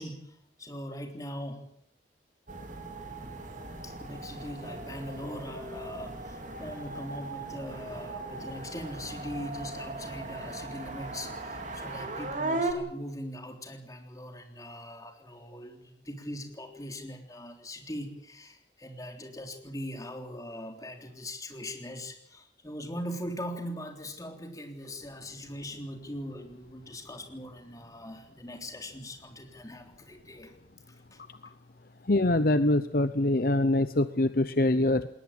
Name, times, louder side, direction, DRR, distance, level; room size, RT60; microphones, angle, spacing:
voice 1, 0.0-1.7 3.8-30.5 30.9-31.2, equal, 20° left, 3 dB, 3.5 m, -41 dB
sound 1, 2.5-12.7, right 2 dB, 45° right, 2.9 m, -38 dB
voice 2, 32.0-35.1, left 1 dB, 50° left, 12 dB, 0.8 m, -24 dB
20.5 x 19.0 x 8.8 m, 0.73 s
head